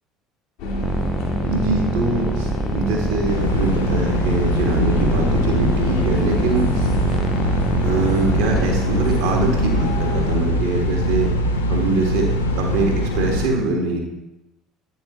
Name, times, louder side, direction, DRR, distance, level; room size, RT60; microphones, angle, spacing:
sound 1, 0.6-10.4, equal, 60° left, 1.5 m, -27 dB
sound 2, 0.8-8.7, right 1 dB, 10° right, 0.4 m, -27 dB
voice 1, 1.4-6.9 7.8-11.3 11.7-14.0, right 3 dB, 65° right, 1 dB, 1.5 m, -23 dB
sound 3, 3.3-13.5, left 1 dB, 80° left, 0.7 m, -22 dB
8.8 x 6.4 x 3.0 m, 0.93 s
figure-of-eight pair, 60°, 0 cm